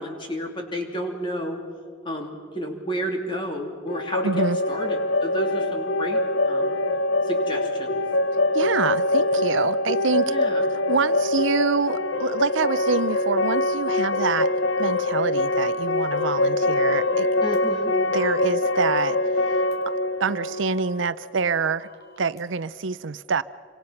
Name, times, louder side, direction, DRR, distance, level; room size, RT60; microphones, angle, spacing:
voice 1, 0.0-1.6 2.0-4.3 4.7-6.8 7.3-8.0 9.6-9.7 10.2-10.6 17.4-17.9, equal, 25° left, 2 dB, 2.9 m, -31 dB
sound 1, 3.9-21.6, left 2 dB, 75° left, 1.0 m, -24 dB
voice 2, 4.2-4.6 8.5-10.4 10.9-14.5 14.8-17.4 17.9-19.6 20.2-21.9 22.2-23.4, right 5 dB, 75° right, 15 dB, 0.6 m, -26 dB
sound 2, 16.9-17.6 19.7-19.8 21.8-22.4, equal, 55° left, 3.6 m, -48 dB
27.5 x 25.5 x 5.9 m, 2.1 s
head